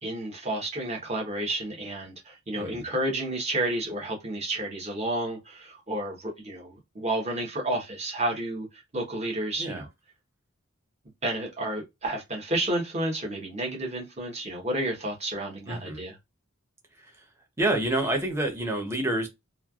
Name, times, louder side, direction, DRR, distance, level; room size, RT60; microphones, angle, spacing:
voice 1, 0.0-8.7 8.9-9.9 11.2-16.1, right 1 dB, 30° right, 1.0 m, -31 dB
voice 2, 2.5-2.9 9.6-9.8 15.7-16.0 17.0-17.2 17.6-19.3, right 1 dB, 10° right, 0.7 m, -28 dB
3.1 x 2.3 x 2.4 m
head